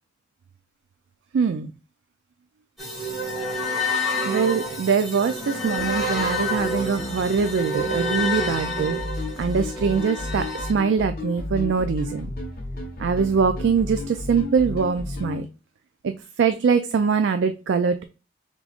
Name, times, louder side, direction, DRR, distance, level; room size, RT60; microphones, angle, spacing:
voice 1, 1.3-1.7 4.2-9.0 9.4-12.3 13.0-15.5 16.0-16.1 16.4-18.0, right 5 dB, 65° right, 9 dB, 0.3 m, -23 dB
sound 1, 2.8-10.7, left 1 dB, ahead, 2.0 m, -28 dB
sound 2, 5.8-15.4, left 2 dB, 50° left, 1.0 m, -33 dB
5.0 x 3.6 x 2.4 m, 0.34 s
head